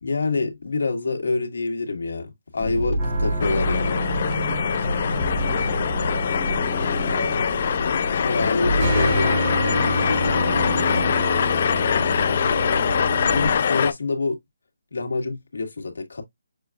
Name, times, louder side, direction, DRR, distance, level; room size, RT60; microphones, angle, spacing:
voice 1, 0.0-4.1 8.2-9.3 13.3-14.4 14.9-16.2, left 3 dB, 80° left, 1.7 m, -26 dB
sound 1, 2.6-9.5, right 1 dB, 10° left, 1.0 m, -30 dB
sound 2, 3.0-13.6, equal, 25° right, 1.3 m, -28 dB
sound 3, 3.4-13.9, left 7 dB, 35° left, 0.4 m, -23 dB
voice 2, 5.5-8.0 8.4-8.7 9.0-11.7, right 2 dB, 55° right, 2.8 m, -39 dB
6.7 x 2.3 x 2.4 m
hypercardioid pair, 175°, 0 cm